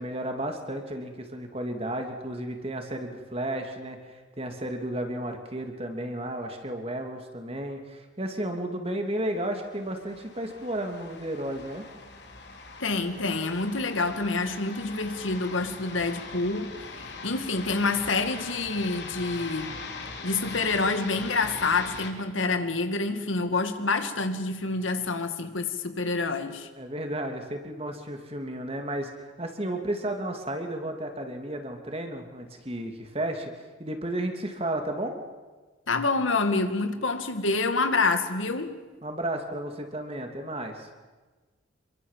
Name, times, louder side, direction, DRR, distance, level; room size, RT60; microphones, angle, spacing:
voice 1, 0.0-11.9 26.8-33.5 33.8-35.2 39.0-40.9, right 1 dB, 30° right, 5 dB, 2.9 m, -33 dB
sound 1, 9.6-22.1, left 4 dB, 60° left, 3.6 m, -41 dB
voice 2, 12.8-19.8 20.2-26.7 35.9-38.8, left 3 dB, 85° left, 8 dB, 2.3 m, -27 dB
27.0 x 23.0 x 7.6 m, 1.3 s
head